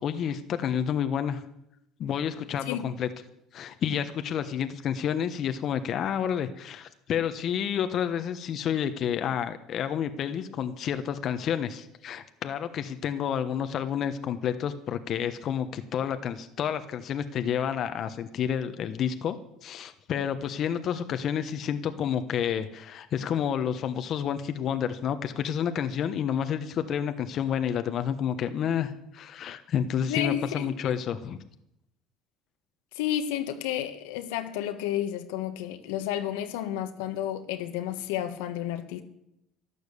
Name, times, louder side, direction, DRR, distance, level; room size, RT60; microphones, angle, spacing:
voice 1, 0.0-1.4 2.0-3.1 3.5-19.4 19.6-31.4, left 8 dB, 50° left, 1.1 m, -30 dB
voice 2, 30.1-31.0 32.9-39.0, left 11 dB, 90° left, 1.5 m, -31 dB
12.0 x 11.5 x 8.4 m
cardioid pair, 115°, 0 cm